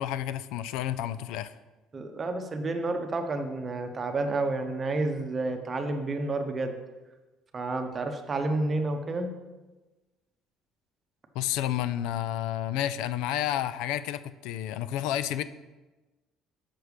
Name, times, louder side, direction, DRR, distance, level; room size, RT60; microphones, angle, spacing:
voice 1, 0.0-1.5 11.4-15.4, left 12 dB, 85° left, 14 dB, 0.3 m, -30 dB
voice 2, 1.9-6.7 7.5-9.3, right 2 dB, 25° right, 6 dB, 0.8 m, -30 dB
6.6 x 5.9 x 4.9 m, 1.2 s
cardioid pair, 145°, 0 cm